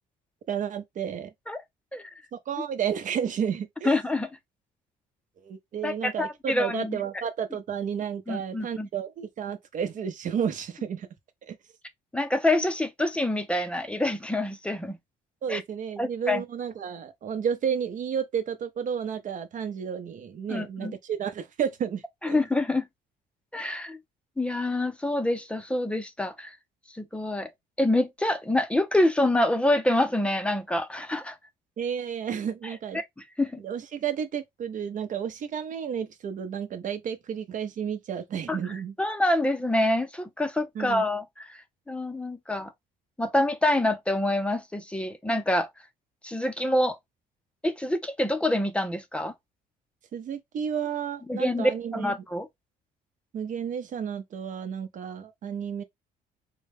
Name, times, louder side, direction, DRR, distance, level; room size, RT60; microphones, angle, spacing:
voice 1, 0.5-1.3 2.3-3.9 5.4-11.1 11.5-11.6 15.4-22.4 31.8-33.0 33.6-38.9 40.7-41.0 50.1-52.1 53.3-55.8, right 8 dB, 50° right, 0.8 m, -32 dB
voice 2, 3.9-4.3 5.8-7.0 8.3-8.9 12.1-15.0 15.5-15.6 16.0-16.4 20.5-20.9 22.2-22.8 23.5-24.0 24.4-26.6 27.0-27.5 27.8-31.4 32.9-33.0 33.4-33.6 38.5-38.6 39.0-41.6 41.9-42.7 43.2-45.7 46.2-47.0 47.6-49.3 51.3-52.5, left 1 dB, 5° left, 0.6 m, -26 dB
3.8 x 2.2 x 3.5 m
cardioid pair, 110°, 17 cm